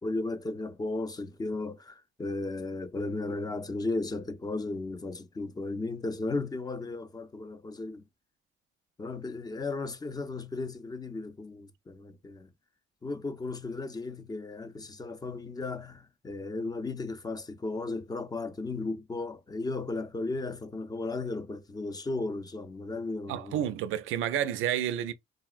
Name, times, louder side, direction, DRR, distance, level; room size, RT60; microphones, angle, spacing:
voice 1, 0.0-8.1 9.0-12.5 13.0-23.7, left 3 dB, 20° left, 0.5 m, -35 dB
voice 2, 23.3-25.1, right 10 dB, 85° right, 0.4 m, -30 dB
3.8 x 2.0 x 2.4 m
cardioid pair, 90°, 20 cm